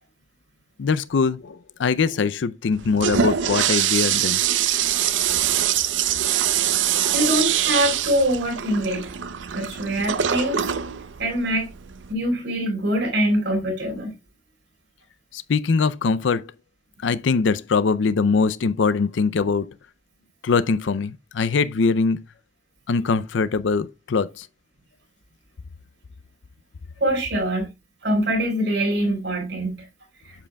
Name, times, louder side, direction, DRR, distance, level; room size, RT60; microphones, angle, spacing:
voice 1, 0.8-4.4 15.3-16.5 17.0-19.7 20.4-22.2 22.9-24.5, left 4 dB, 80° left, 0.5 m, -22 dB
Toilet flush, 2.7-12.1, right 10 dB, 90° right, 0.6 m, -24 dB
voice 2, 7.1-9.1 9.5-10.6 11.2-11.7 12.1-14.1 27.0-27.7 28.0-29.7, equal, 65° right, 4.3 m, -23 dB
8.6 x 7.6 x 2.2 m
head